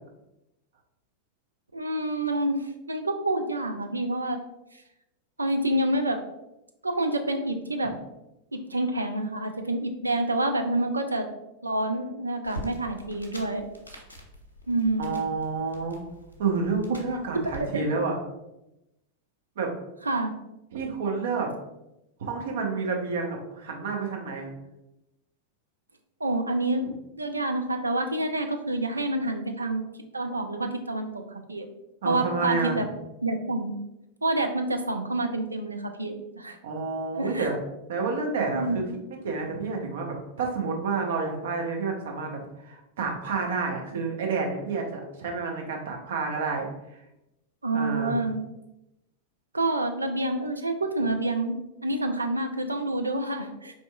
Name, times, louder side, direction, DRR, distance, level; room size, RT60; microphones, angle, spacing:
voice 1, 1.7-4.4 5.4-6.2 6.8-7.9 8.5-11.3 11.6-13.7 14.7-15.2 16.9-17.0 17.3-17.9 20.0-20.3 26.2-29.8 30.1-31.7 32.0-32.8 33.2-33.8 34.2-36.6 37.2-37.5 38.5-38.8 47.6-48.4 49.5-51.6 51.8-53.7, right 2 dB, 80° right, 5 dB, 0.4 m, -28 dB
sound 1, 12.4-17.6, equal, 85° left, 0.7 m, -44 dB
voice 2, 15.0-16.0 16.4-18.2 19.6-19.7 20.7-21.5 22.2-24.5 32.0-32.9 36.6-37.6 37.9-38.8 39.1-46.7 47.7-48.3, right 4 dB, 60° right, 1 dB, 0.7 m, -29 dB
4.3 x 2.9 x 2.2 m, 0.90 s
figure-of-eight pair, 90°, 0 cm